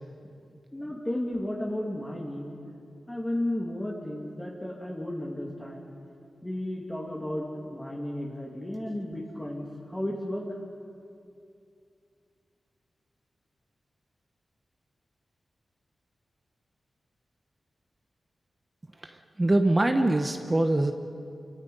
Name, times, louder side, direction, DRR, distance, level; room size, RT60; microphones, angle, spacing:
voice 1, 0.7-2.6 3.1-5.9 6.4-10.6, left 1 dB, 10° left, -3 dB, 2.3 m, -33 dB
voice 2, 19.4-20.9, right 1 dB, 20° right, 5 dB, 1.0 m, -23 dB
29.5 x 25.0 x 5.5 m, 2.4 s
wide cardioid pair, 150°, 0 cm